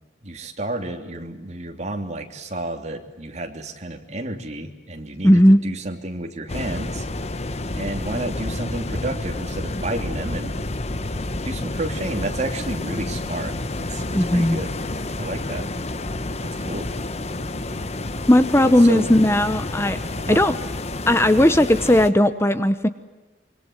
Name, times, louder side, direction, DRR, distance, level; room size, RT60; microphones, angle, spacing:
voice 1, 0.2-7.0 7.7-10.6 11.4-13.5 13.9-14.0 14.3-14.7 15.2-15.7 16.4-16.9 18.6-19.1 20.2-20.4, right 1 dB, 40° right, 4 dB, 3.1 m, -31 dB
voice 2, 5.2-5.6 14.1-14.6 18.3-20.0 20.3-20.5 21.1-22.9, left 1 dB, 15° left, 12 dB, 0.8 m, -16 dB
sound 1, 6.5-22.1, left 2 dB, 35° left, 1.1 m, -29 dB
25.5 x 24.5 x 8.1 m, 1.2 s
head